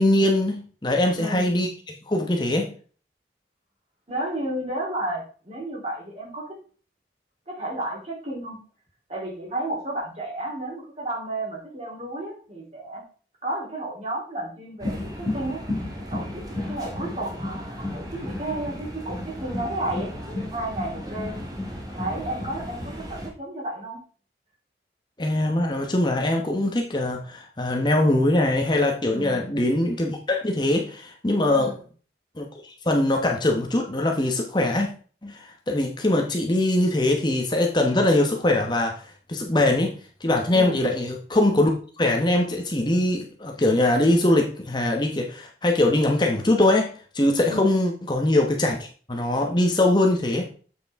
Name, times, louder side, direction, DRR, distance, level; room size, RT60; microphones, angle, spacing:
voice 1, 0.0-1.7 2.1-2.7 25.2-31.7 32.4-34.9 35.2-41.7 42.0-50.5, left 1 dB, 25° left, 2 dB, 1.0 m, -22 dB
voice 2, 1.1-1.7 4.1-6.6 7.5-8.6 9.1-13.0 13.4-15.6 16.1-21.4 22.0-24.0 29.0-29.5 31.5-31.8 40.5-40.8 47.5-47.7, right 1 dB, 35° right, -3 dB, 3.3 m, -32 dB
sound 1, 14.8-23.3, left 1 dB, 20° right, 1.7 m, -33 dB
7.8 x 6.8 x 3.5 m, 0.40 s
head